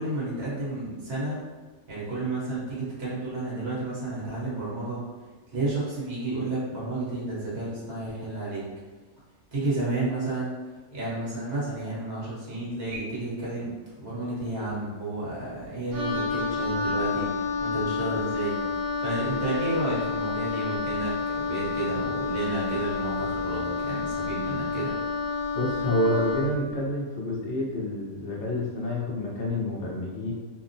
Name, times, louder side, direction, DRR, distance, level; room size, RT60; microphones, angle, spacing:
voice 1, 0.0-1.4 1.9-5.0 5.5-8.6 9.5-10.5 10.9-13.7 14.0-17.3 17.6-25.0, right 2 dB, 45° right, -7 dB, 1.1 m, -31 dB
Wind instrument woodwind instrument, 15.9-26.6, left 4 dB, 70° right, 0.5 m, -29 dB
voice 2, 25.5-30.3, left 1 dB, 60° left, -3 dB, 0.8 m, -28 dB
2.8 x 2.0 x 2.6 m, 1.4 s
omnidirectional pair, 1.5 m